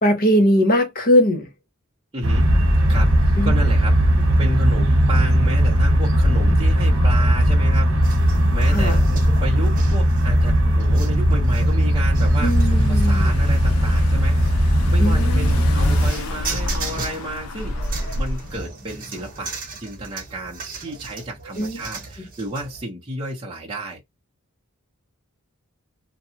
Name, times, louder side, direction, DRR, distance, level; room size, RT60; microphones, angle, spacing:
voice 1, 0.0-1.5 3.4-3.6 8.7-9.0 12.4-13.3 15.0-15.7 21.6-21.8, equal, 40° left, 0.9 m, -20 dB
voice 2, 2.1-2.5 2.9-9.1 9.4-17.8 18.1-19.5 19.8-24.0, right 1 dB, 20° right, 0.7 m, -32 dB
sound 1, 2.2-16.1, equal, 65° right, 1.2 m, -17 dB
sound 2, 8.0-22.8, right 4 dB, 40° right, 1.0 m, -37 dB
Car / Engine, 11.8-18.6, left 1 dB, 75° left, 0.5 m, -31 dB
2.8 x 2.3 x 2.6 m
head